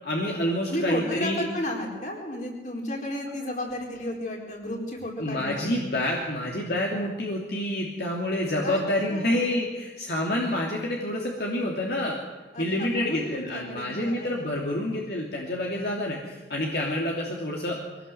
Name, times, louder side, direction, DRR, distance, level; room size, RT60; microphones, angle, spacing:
voice 1, 0.0-1.5 5.2-12.2 12.6-17.8, left 1 dB, 60° left, -2 dB, 2.8 m, -28 dB
voice 2, 0.7-5.7 8.6-8.8 9.1-9.5 12.5-14.3, left 1 dB, 45° left, 0 dB, 4.6 m, -33 dB
23.0 x 18.0 x 7.9 m, 1.2 s
head